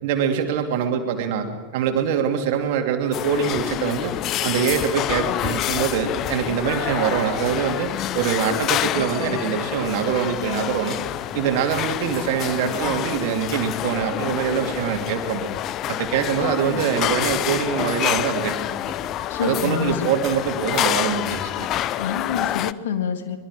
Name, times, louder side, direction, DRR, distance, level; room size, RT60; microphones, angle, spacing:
voice 1, 0.0-1.5 1.7-4.1 4.4-7.9 8.1-11.0 11.3-15.5 15.9-19.1 19.4-21.7, right 8 dB, 50° right, 4 dB, 2.7 m, -24 dB
sound 1, 3.1-22.7, left 12 dB, 35° left, 0.6 m, -27 dB
voice 2, 19.3-20.4 22.0-23.4, left 7 dB, 60° left, 7 dB, 2.0 m, -27 dB
24.5 x 22.0 x 5.0 m, 1.5 s
figure-of-eight pair, 90°, 0 cm